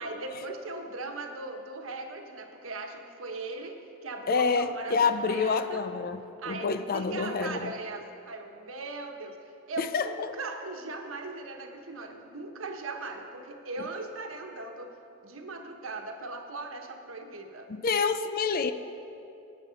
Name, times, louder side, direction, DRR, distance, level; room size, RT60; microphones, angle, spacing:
voice 1, 0.0-5.8 6.4-15.0 15.2-17.7, right 3 dB, 90° right, 4 dB, 1.2 m, -39 dB
voice 2, 4.3-6.2 6.5-7.7 9.8-10.1 17.7-18.7, left 5 dB, 45° left, 11 dB, 0.5 m, -27 dB
18.5 x 7.5 x 5.2 m, 2.8 s
head